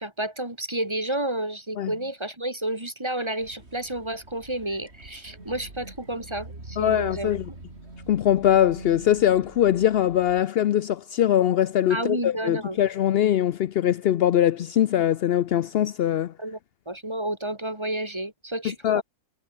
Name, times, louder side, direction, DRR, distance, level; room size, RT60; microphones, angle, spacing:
voice 1, 0.0-7.3 11.9-12.8 16.4-16.6 16.9-19.0, right 1 dB, 15° right, 2.8 m, -31 dB
sound 1, 3.4-10.4, right 2 dB, 40° right, 4.6 m, -43 dB
voice 2, 6.8-7.4 8.1-16.3 18.8-19.0, left 11 dB, 90° left, 0.5 m, -22 dB
omnidirectional pair, 1.6 m